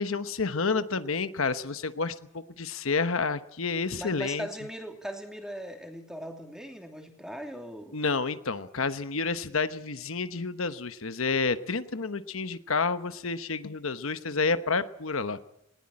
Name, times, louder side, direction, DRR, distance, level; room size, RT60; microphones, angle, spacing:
voice 1, 0.0-4.5 7.9-15.4, left 4 dB, 75° left, 11 dB, 1.1 m, -29 dB
voice 2, 4.0-8.0, equal, 5° right, 4 dB, 2.8 m, -39 dB
20.5 x 19.0 x 8.8 m, 0.81 s
head